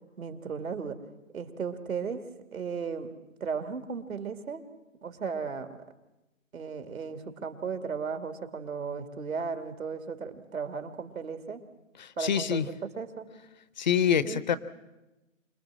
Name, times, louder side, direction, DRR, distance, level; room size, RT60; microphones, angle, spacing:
voice 1, 0.2-1.0 1.3-2.2 2.5-3.1 3.4-4.6 5.0-5.7 6.5-11.6 12.2-13.3 14.2-14.4, right 5 dB, 85° right, 7 dB, 2.5 m, -35 dB
voice 2, 12.0-12.7 13.8-14.6, left 8 dB, 35° left, 15 dB, 0.7 m, -26 dB
26.0 x 19.5 x 7.5 m, 1.0 s
hypercardioid pair, 155°, 40 cm